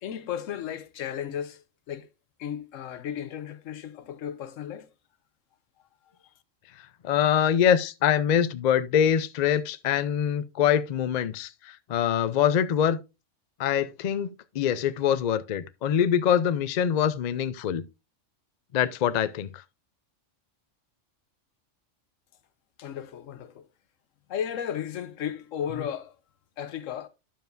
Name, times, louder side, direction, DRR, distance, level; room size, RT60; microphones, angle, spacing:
voice 1, 0.0-2.1 2.4-4.9 6.2-6.3 22.8-23.7 24.3-26.1 26.6-27.1, left 9 dB, 80° left, 1.1 m, -34 dB
voice 2, 7.0-13.0 13.6-14.3 14.5-17.8 18.7-19.5, left 9 dB, 60° left, 0.4 m, -24 dB
10.5 x 7.0 x 2.5 m
omnidirectional pair, 1.3 m